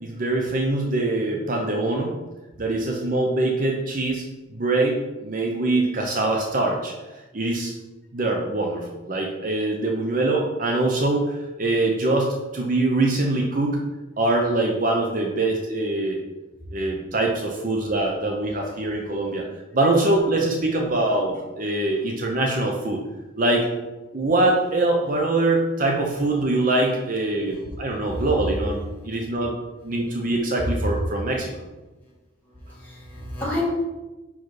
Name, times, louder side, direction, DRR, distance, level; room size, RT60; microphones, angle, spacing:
voice 1, 0.0-2.1 2.6-4.3 4.5-6.9 7.3-7.7 8.1-13.8 14.2-16.2 16.7-19.4 19.7-23.0 23.4-23.7 24.1-29.5 29.8-31.5, right 2 dB, 45° right, 1 dB, 0.7 m, -23 dB
voice 2, 32.6-33.6, equal, 10° left, -7 dB, 2.1 m, -31 dB
5.7 x 4.7 x 4.7 m, 1.1 s
head